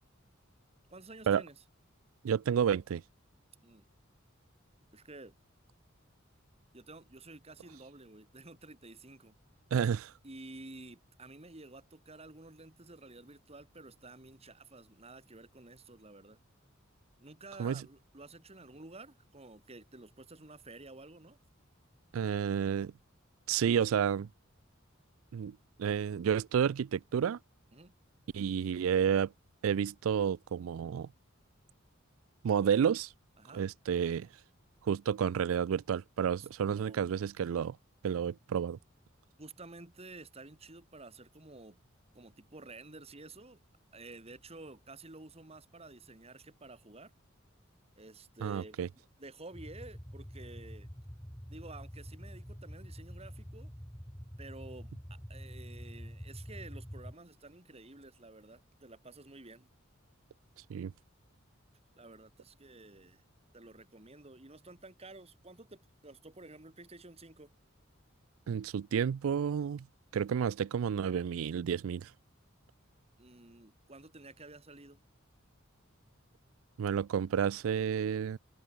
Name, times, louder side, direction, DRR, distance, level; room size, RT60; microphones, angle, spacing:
voice 1, 0.9-1.6 3.6-3.9 4.9-5.3 6.7-9.3 10.2-16.4 17.2-21.4 27.7-27.9 33.4-33.6 36.4-36.5 36.8-37.2 39.4-41.8 42.1-43.6 43.9-47.1 48.0-48.8 49.2-50.9 51.5-53.7 54.4-59.7 62.0-63.2 63.5-67.5 73.2-75.0, right 2 dB, 30° right, 2.3 m, -51 dB
voice 2, 2.2-3.0 9.7-10.1 17.6-17.8 22.1-22.9 23.5-24.3 25.3-27.4 28.3-29.3 29.6-31.1 32.4-33.1 33.5-34.3 34.8-37.8 38.0-38.8 48.4-48.9 60.7-60.9 68.5-69.9 70.1-72.1 76.8-78.4, right 8 dB, 90° right, 0.4 m, -30 dB
sound 1, 49.5-57.1, equal, 10° left, 3.3 m, -46 dB
head